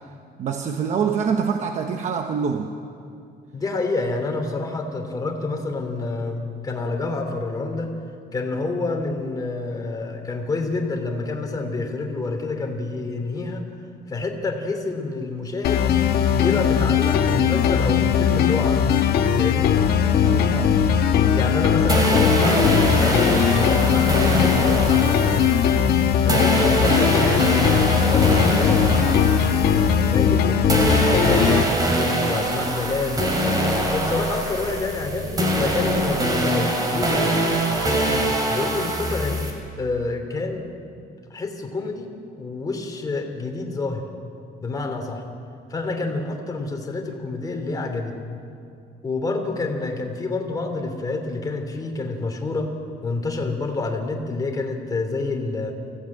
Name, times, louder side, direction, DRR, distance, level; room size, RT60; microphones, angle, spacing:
voice 1, 0.4-2.7 20.2-20.8 38.1-38.4, right 6 dB, 45° right, 5 dB, 1.1 m, -26 dB
voice 2, 3.5-7.9 8.3-13.6 14.1-15.8 16.4-18.9 19.4-19.7 21.3-25.6 26.2-27.5 28.1-29.2 29.7-31.7 32.2-33.2 33.9-37.3 38.5-39.5 39.8-40.6 41.3-44.1 44.6-45.2 45.7-48.2 49.0-52.7 53.0-55.7, left 3 dB, 20° left, 3 dB, 2.9 m, -28 dB
sound 1, 15.6-31.6, left 8 dB, 70° left, 1.4 m, -19 dB
sound 2, 21.9-30.4 30.7-39.5, right 1 dB, 20° right, 3.7 m, -23 dB
25.0 x 16.0 x 8.7 m, 2.4 s
cardioid pair, 160°, 17 cm